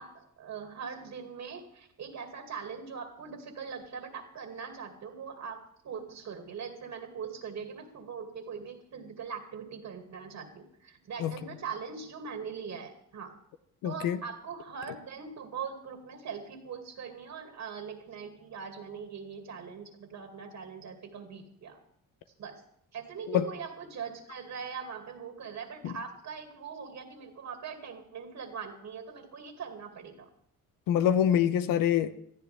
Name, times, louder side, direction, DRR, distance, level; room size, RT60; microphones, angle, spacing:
voice 1, 0.0-13.4 13.8-21.8 22.4-22.6 22.9-30.3, right 6 dB, 60° right, 2.4 m, -41 dB
voice 2, 13.8-14.2 23.3-23.5 25.8-25.9 30.9-32.1, left 9 dB, 85° left, 0.9 m, -25 dB
20.0 x 13.5 x 3.5 m
cardioid pair, 85°, 32 cm